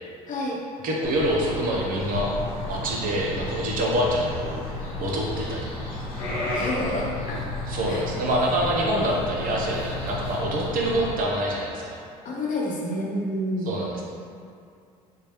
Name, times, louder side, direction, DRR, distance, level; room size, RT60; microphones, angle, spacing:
voice 1, 0.3-0.6 6.5-7.5 7.9-8.0 12.2-13.7, left 1 dB, 45° left, -3 dB, 0.9 m, -29 dB
voice 2, 0.8-2.3 2.7-4.6 5.0-5.7 7.7-12.0 13.7-14.0, right 1 dB, 55° right, -2 dB, 0.9 m, -26 dB
sound 1, 1.0-11.1, left 2 dB, 80° left, 0.9 m, -32 dB
3.6 x 3.1 x 2.9 m, 2.4 s
hypercardioid pair, 70°, 18 cm